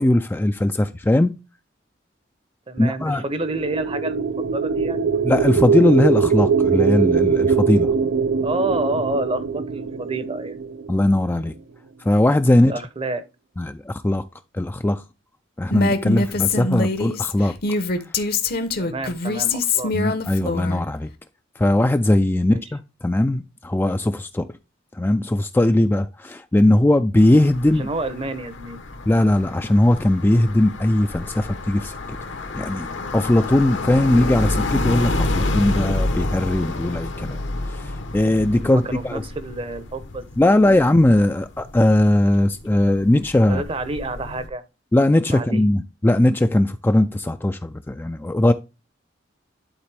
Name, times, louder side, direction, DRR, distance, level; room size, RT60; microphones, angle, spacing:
voice 1, 0.0-1.4 2.8-3.2 5.2-7.9 10.9-11.5 12.0-12.7 13.6-14.2 14.5-15.0 15.6-17.6 19.9-21.1 21.6-24.5 24.9-27.9 29.1-32.2 32.5-37.4 37.7-39.2 40.4-43.6 44.9-48.5, left 1 dB, 10° left, 0.3 m, -19 dB
voice 2, 2.7-5.2 8.4-10.6 12.6-13.3 18.8-19.9 22.5-22.6 27.8-28.8 38.6-40.8 43.4-44.6 45.3-45.6, right 2 dB, 30° right, 0.8 m, -29 dB
sound 1, 3.3-11.4, right 5 dB, 75° right, 0.5 m, -22 dB
Female speech woman speaking, 15.7-20.8, left 3 dB, 55° left, 0.9 m, -23 dB
sound 2, 27.2-44.5, left 2 dB, 75° left, 1.1 m, -29 dB
11.5 x 4.1 x 3.4 m
head